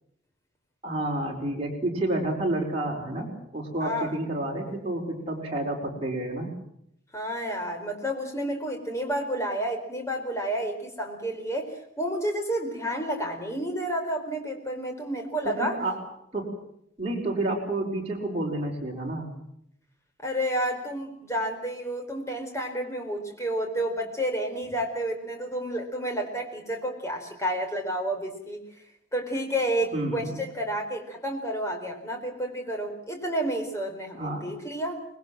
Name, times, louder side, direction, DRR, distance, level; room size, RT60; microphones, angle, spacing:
voice 1, 0.8-6.5 15.4-15.9 16.3-16.5 17.0-19.3 29.9-30.5 34.1-34.4, right 1 dB, 30° right, -1 dB, 4.8 m, -30 dB
voice 2, 7.1-15.8 20.2-28.6 29.1-35.1, right 1 dB, 15° left, 3 dB, 4.4 m, -30 dB
26.0 x 20.5 x 7.6 m, 0.74 s
head